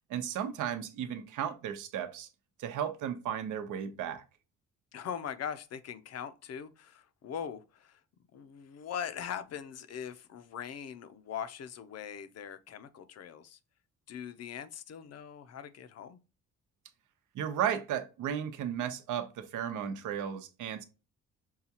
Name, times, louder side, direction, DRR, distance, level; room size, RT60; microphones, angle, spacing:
voice 1, 0.1-2.3 2.6-4.2 17.3-20.8, right 9 dB, 80° right, 0.8 m, -34 dB
voice 2, 4.9-8.0 8.3-13.6 14.1-16.2, left 8 dB, 55° left, 0.6 m, -41 dB
5.6 x 2.3 x 2.8 m
cardioid pair, 90°, 30 cm